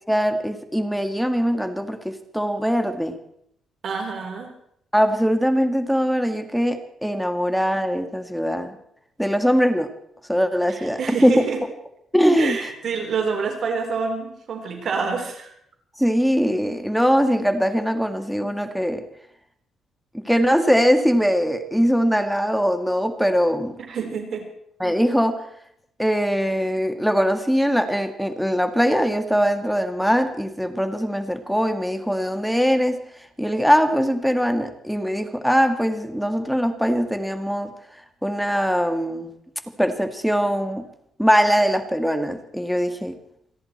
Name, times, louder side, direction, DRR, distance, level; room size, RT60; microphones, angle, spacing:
voice 1, 0.1-3.2 4.9-8.8 9.2-9.9 10.3-11.5 12.1-12.6 16.0-19.0 20.1-23.8 24.8-25.4 26.0-33.0 33.4-37.7 38.2-39.3 39.8-40.8 41.2-43.2, equal, ahead, 8 dB, 1.9 m, -21 dB
voice 2, 3.8-4.5 10.7-11.6 12.4-15.5 23.9-24.5, right 5 dB, 55° right, 4 dB, 3.8 m, -27 dB
28.5 x 10.5 x 4.4 m, 0.72 s
cardioid pair, 90°, 0 cm